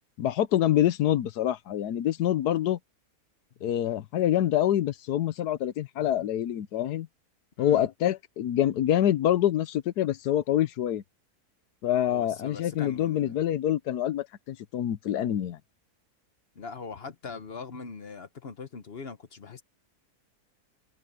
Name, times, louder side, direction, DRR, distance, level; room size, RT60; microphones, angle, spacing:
voice 1, 0.2-2.8 3.6-7.1 7.6-11.0 11.8-15.6, left 11 dB, 85° left, 1.4 m, -26 dB
voice 2, 6.0-6.3 7.6-7.8 12.1-13.3 16.6-19.6, left 4 dB, 45° left, 1.0 m, -41 dB
omnidirectional pair, 1.7 m